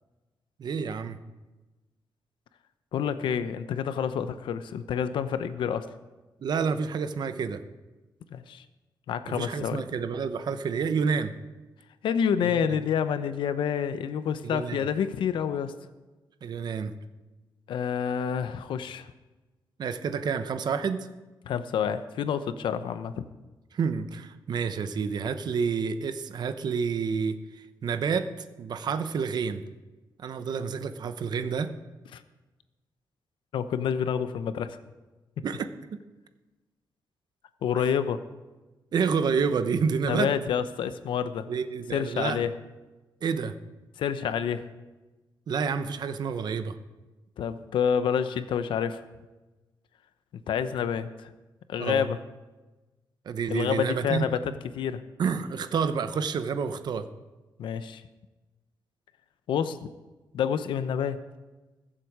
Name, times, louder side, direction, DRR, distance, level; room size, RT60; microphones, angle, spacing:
voice 1, 0.6-1.2 6.4-7.6 9.3-11.3 12.4-12.7 14.4-14.9 16.4-16.9 19.8-21.1 23.7-29.6 30.2-31.7 35.4-36.0 37.8-37.9 38.9-40.3 41.5-42.4 43.2-43.5 45.5-46.7 51.8-52.0 53.3-54.3 55.2-57.0, right 6 dB, 60° right, 10 dB, 0.9 m, -29 dB
voice 2, 2.9-5.9 8.3-8.6 9.1-9.8 12.0-15.7 17.7-19.1 21.5-23.3 32.1-32.2 33.5-34.8 37.6-38.2 40.1-41.4 41.9-42.5 44.0-44.7 47.4-49.0 50.5-51.3 51.7-52.2 53.5-55.0 57.6-58.0 59.5-59.8 60.3-61.2, left 8 dB, 90° left, 11 dB, 0.8 m, -28 dB
21.5 x 7.6 x 4.9 m, 1.2 s
cardioid pair, 125°, 8 cm